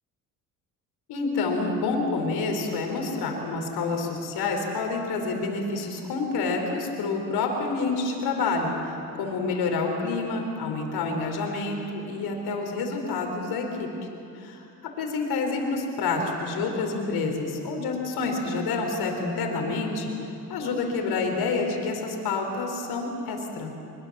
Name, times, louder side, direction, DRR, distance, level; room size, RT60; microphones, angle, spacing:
voice 1, 1.1-13.9 14.3-20.1 20.5-23.7, left 3 dB, 70° left, 2 dB, 4.5 m, -28 dB
23.0 x 22.5 x 7.5 m, 2.8 s
supercardioid pair, 85°, 40 cm